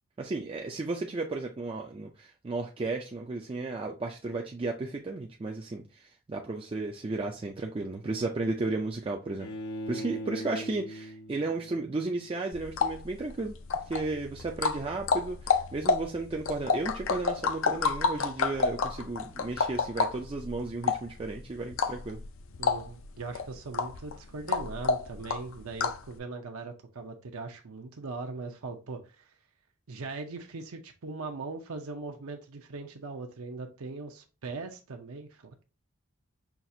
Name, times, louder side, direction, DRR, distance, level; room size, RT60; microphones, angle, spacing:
voice 1, 0.2-9.5 9.9-22.2, right 3 dB, 25° right, 0.3 m, -34 dB
Bowed string instrument, 9.4-12.4, equal, 85° left, 0.9 m, -40 dB
sound 1, 12.5-26.1, left 5 dB, 60° left, 0.4 m, -30 dB
voice 2, 22.6-29.3 29.9-35.6, right 3 dB, 75° right, 0.6 m, -40 dB
5.8 x 2.4 x 2.6 m
head